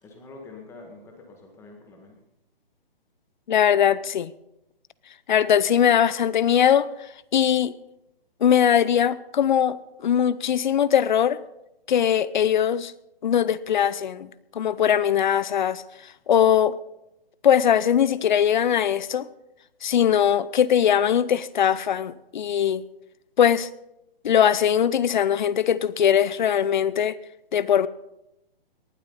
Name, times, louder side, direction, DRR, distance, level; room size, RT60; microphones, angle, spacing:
voice 1, 0.0-2.2, left 3 dB, 10° left, 2.0 m, -45 dB
voice 2, 3.5-4.3 5.3-6.9 7.3-7.7 8.4-11.4 11.9-12.9 13.2-14.3 14.5-15.8 16.3-16.7 17.4-19.3 19.8-22.8 23.4-23.7 24.2-27.2 27.5-27.9, left 9 dB, 50° left, 0.7 m, -20 dB
19.0 x 12.0 x 4.2 m
hypercardioid pair, 155°, 30 cm